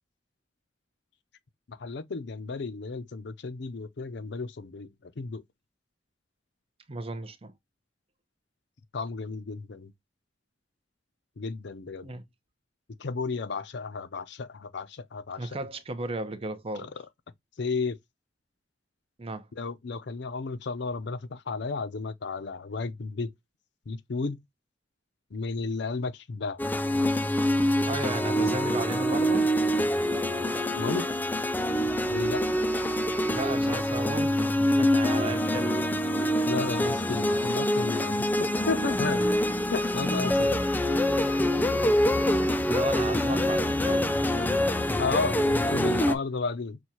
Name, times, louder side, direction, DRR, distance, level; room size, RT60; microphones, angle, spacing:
voice 1, 1.7-5.4 8.9-9.9 11.4-12.1 13.0-15.5 16.8-16.9 17.6-18.0 19.6-23.3 23.9-24.4 25.3-26.6 30.7-31.1 32.1-32.4 36.5-39.3 39.7-40.6 45.0-46.8, left 4 dB, 65° left, 0.6 m, -33 dB
voice 2, 6.9-7.5 12.0-12.2 15.4-16.9 19.2-19.5 27.9-29.5 33.3-35.9 42.6-44.5, right 2 dB, 30° right, 0.7 m, -35 dB
sound 1, 26.6-46.1, left 1 dB, 10° left, 0.4 m, -25 dB
6.2 x 2.3 x 2.8 m
head